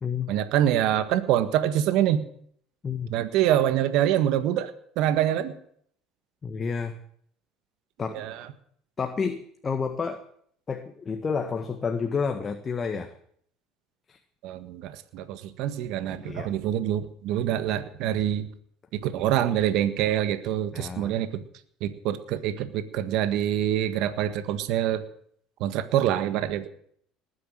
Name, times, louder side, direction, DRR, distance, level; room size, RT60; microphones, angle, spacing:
voice 1, 0.3-2.3 3.1-5.5 8.1-8.4 14.4-18.5 18.9-21.4 21.8-25.0 25.6-26.7, right 11 dB, 65° right, 11 dB, 1.6 m, -25 dB
voice 2, 6.4-7.0 8.0-8.2 9.0-10.2 10.7-13.1 14.1-14.2 16.2-16.5 20.7-21.1, left 5 dB, 25° left, 6 dB, 1.6 m, -30 dB
19.5 x 9.7 x 7.6 m, 0.64 s
cardioid pair, 120°, 0 cm